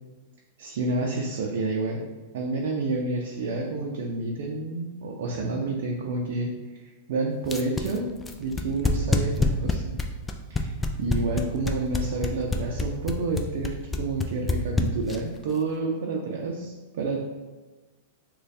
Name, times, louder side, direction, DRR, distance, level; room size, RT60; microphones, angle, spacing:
voice 1, 0.6-8.1 8.4-10.0 10.5-17.2, right 2 dB, 70° right, -1 dB, 0.5 m, -29 dB
sound 1, 7.4-15.4, left 3 dB, 10° left, 0.3 m, -26 dB
3.2 x 2.2 x 4.1 m, 1.2 s
supercardioid pair, 145°, 0 cm